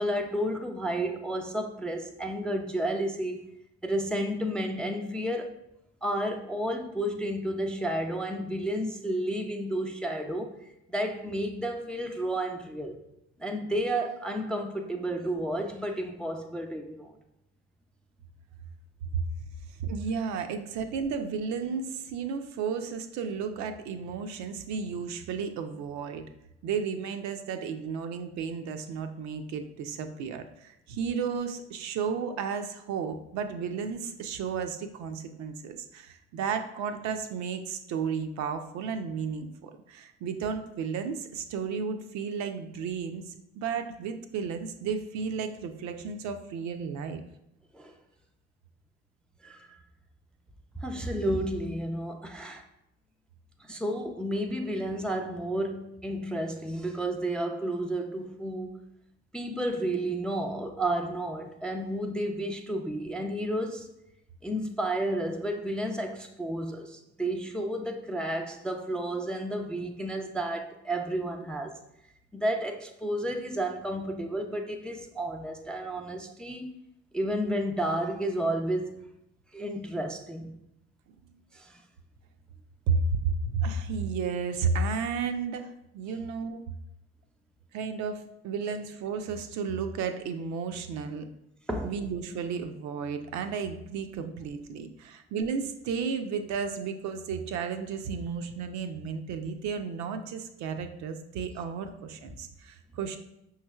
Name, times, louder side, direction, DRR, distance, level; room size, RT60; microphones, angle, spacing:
voice 1, 0.0-3.4 3.8-5.5 6.0-13.0 13.4-17.1 47.7-47.9 49.4-49.8 50.8-52.6 53.6-58.8 59.3-63.9 64.4-71.8 72.3-76.8 77.1-79.0 79.5-80.6 81.5-81.8 91.7-91.9, right 1 dB, 5° left, 4 dB, 0.4 m, -31 dB
voice 2, 19.8-26.3 26.6-47.2 82.9-86.7 87.7-91.3 91.8-103.2, right 5 dB, 55° right, 7 dB, 0.5 m, -33 dB
5.3 x 3.2 x 2.3 m, 0.81 s
hypercardioid pair, 55°, 34 cm